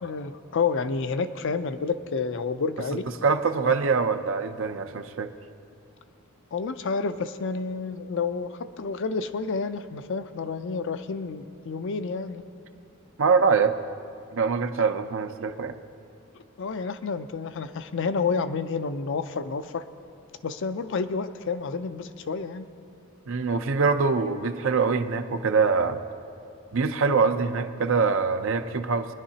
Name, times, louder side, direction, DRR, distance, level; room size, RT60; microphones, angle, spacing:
voice 1, 0.0-3.0 3.6-3.7 6.5-12.4 16.6-19.8 20.4-22.7, left 4 dB, 60° left, 10 dB, 0.5 m, -29 dB
voice 2, 3.2-5.3 13.2-13.8 14.3-15.8 23.3-26.0 26.7-29.1, right 5 dB, 65° right, 9 dB, 0.6 m, -24 dB
23.0 x 10.5 x 2.8 m, 2.5 s
head